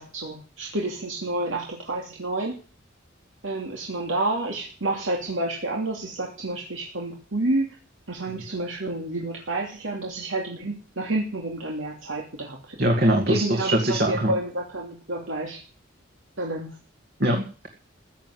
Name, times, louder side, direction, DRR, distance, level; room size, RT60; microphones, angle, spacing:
voice 1, 0.0-2.5 3.4-7.8 8.1-12.9 13.3-15.6 16.4-16.7, right 2 dB, 85° right, -1 dB, 2.8 m, -29 dB
voice 2, 12.8-14.3 17.2-17.7, right 1 dB, 50° right, 2 dB, 2.1 m, -22 dB
15.5 x 9.6 x 7.8 m, 0.38 s
head